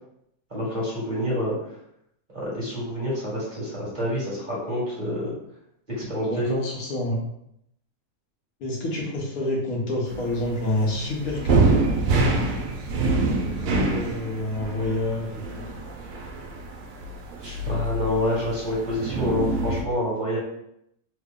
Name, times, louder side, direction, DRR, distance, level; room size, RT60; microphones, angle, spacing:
voice 1, 0.5-1.5 2.3-5.3 6.0-6.6 17.4-20.4, equal, 35° right, -7 dB, 1.3 m, -27 dB
voice 2, 6.2-7.2 8.6-11.8 13.7-15.6, left 1 dB, 75° left, -2 dB, 1.3 m, -28 dB
sound 1, 10.1-19.8, right 2 dB, 85° right, 1.1 m, -26 dB
3.3 x 2.1 x 3.5 m, 0.76 s
omnidirectional pair, 1.6 m